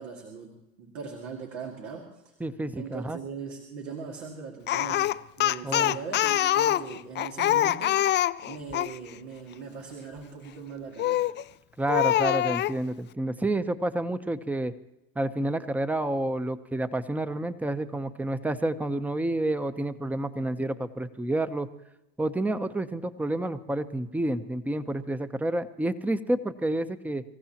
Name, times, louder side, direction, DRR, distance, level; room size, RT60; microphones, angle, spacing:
voice 1, 0.0-2.3 2.7-8.1 8.4-11.3, right 5 dB, 85° right, 0 dB, 2.4 m, -40 dB
voice 2, 2.4-3.2 5.6-6.0 11.8-14.7 15.2-21.7 22.2-27.2, right 1 dB, 5° right, 11 dB, 0.8 m, -29 dB
Speech, 4.7-9.0 11.0-11.4 11.9-12.8, left 13 dB, 35° left, 0.4 m, -25 dB
25.0 x 15.0 x 2.9 m, 0.92 s
supercardioid pair, 90°, 31 cm